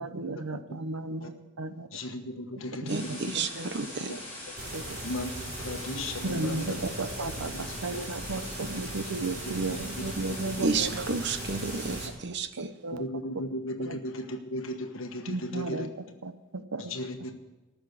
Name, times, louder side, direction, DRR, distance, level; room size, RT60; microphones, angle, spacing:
voice 1, 0.0-1.9 2.8-3.7 4.0-4.1 4.7-5.0 6.2-11.0 12.6-13.1 13.9-14.0 15.3-15.9 16.2-16.9, right 3 dB, 85° right, 11 dB, 0.8 m, -34 dB
voice 2, 1.9-3.2 4.1-4.2 5.0-6.8 7.2-7.3 7.7-8.0 9.4-10.4 12.9-15.9 16.8-17.4, left 1 dB, 65° left, 6 dB, 1.3 m, -36 dB
sound 1, 2.9-12.1, left 1 dB, 10° left, 5.2 m, -42 dB
voice 3, 2.9-4.1 10.6-12.7, right 4 dB, 50° right, 10 dB, 0.8 m, -31 dB
sound 2, 4.6-12.1, right 2 dB, 35° right, 1.6 m, -40 dB
14.0 x 6.4 x 9.2 m, 1.1 s
head